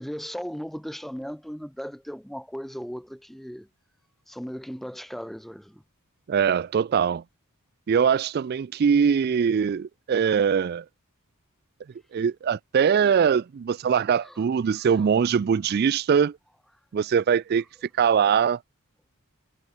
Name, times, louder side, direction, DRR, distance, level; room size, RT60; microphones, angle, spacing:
voice 1, 0.0-3.7 4.3-5.8 14.2-14.4 14.8-15.0, equal, ahead, 0.5 m, -37 dB
voice 2, 6.3-7.2 7.9-10.8 12.1-16.4 16.9-17.6 18.0-18.6, right 7 dB, 45° right, 0.3 m, -22 dB
head